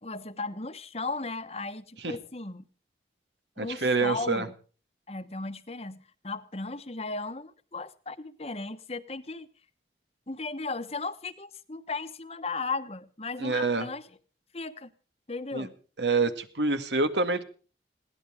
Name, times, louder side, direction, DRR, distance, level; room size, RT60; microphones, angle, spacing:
voice 1, 0.0-2.6 3.6-4.5 5.1-9.5 10.3-14.1 14.5-14.9 15.3-15.7, left 3 dB, 35° left, 11 dB, 1.2 m, -36 dB
voice 2, 3.6-4.5 13.4-13.9 15.5-15.7 16.0-17.4, right 3 dB, 80° right, 9 dB, 2.0 m, -26 dB
21.5 x 17.0 x 3.7 m, 0.40 s
head